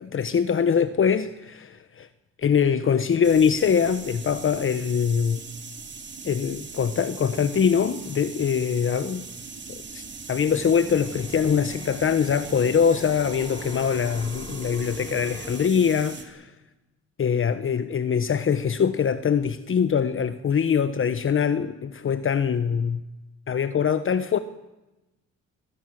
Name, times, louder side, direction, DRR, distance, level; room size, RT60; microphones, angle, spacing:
voice 1, 0.0-2.1 2.4-5.4 6.2-9.3 9.7-16.5 17.2-23.0 23.5-24.4, left 7 dB, 45° left, 12 dB, 1.1 m, -23 dB
sound 1, 3.2-16.2, right 4 dB, 35° right, 3.6 m, -40 dB
sound 2, 10.6-15.7, left 3 dB, 15° left, 1.2 m, -42 dB
23.0 x 18.5 x 7.6 m, 1.0 s
cardioid pair, 90°, 30 cm